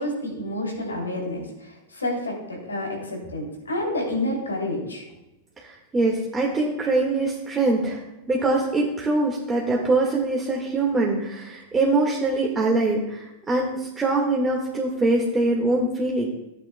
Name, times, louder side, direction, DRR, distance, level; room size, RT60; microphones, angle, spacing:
voice 1, 0.0-5.0, left 1 dB, 90° left, 0 dB, 2.8 m, -29 dB
voice 2, 5.6-8.0 8.3-16.3, right 2 dB, 20° right, -2 dB, 1.7 m, -23 dB
13.5 x 8.8 x 2.2 m, 0.98 s
hypercardioid pair, 95°, 0 cm